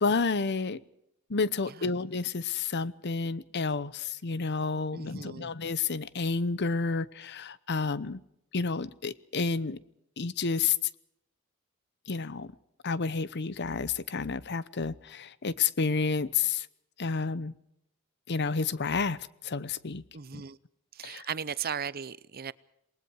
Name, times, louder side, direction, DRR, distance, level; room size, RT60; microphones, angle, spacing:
voice 1, 0.0-0.8 1.3-8.2 8.5-9.8 10.2-10.8 12.1-12.5 12.8-16.7 17.0-17.5 18.3-19.2 19.4-20.0 20.3-20.4 21.0-21.2, left 4 dB, 55° left, 0.9 m, -30 dB
voice 2, 1.7-2.0 4.9-5.5 20.1-20.6 20.9-22.5, right 7 dB, 45° right, 0.7 m, -37 dB
27.5 x 20.0 x 4.8 m
head